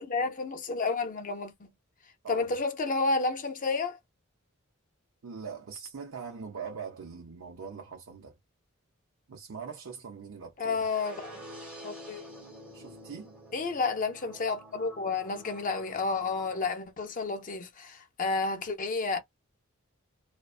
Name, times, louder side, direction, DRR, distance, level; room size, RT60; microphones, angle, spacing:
voice 1, 0.0-1.7 2.3-4.0 10.6-11.4 11.8-12.2 13.5-19.2, left 4 dB, 40° left, 0.5 m, -31 dB
voice 2, 2.2-2.6 5.2-8.3 9.3-10.8 12.7-13.3, right 6 dB, 80° right, 0.6 m, -42 dB
sound 1, 10.7-16.7, equal, 5° right, 0.7 m, -48 dB
2.4 x 2.2 x 2.3 m
head